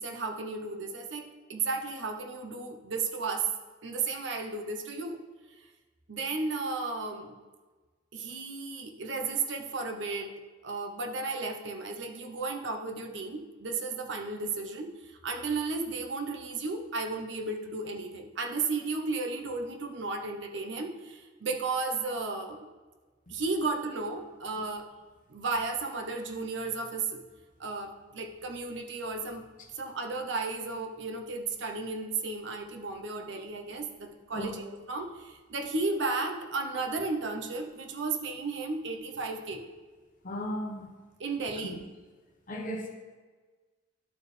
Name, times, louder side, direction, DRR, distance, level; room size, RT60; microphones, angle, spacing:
voice 1, 0.0-3.5 3.8-5.2 6.1-7.3 8.1-10.3 10.6-22.7 23.3-24.9 25.3-27.2 27.6-29.5 29.7-34.6 34.9-39.6 41.2-41.8, right 3 dB, 65° right, 3 dB, 0.8 m, -34 dB
voice 2, 40.2-40.9 41.6-41.8 42.5-42.9, equal, 45° left, 1 dB, 1.0 m, -36 dB
12.0 x 4.6 x 3.3 m, 1.3 s
head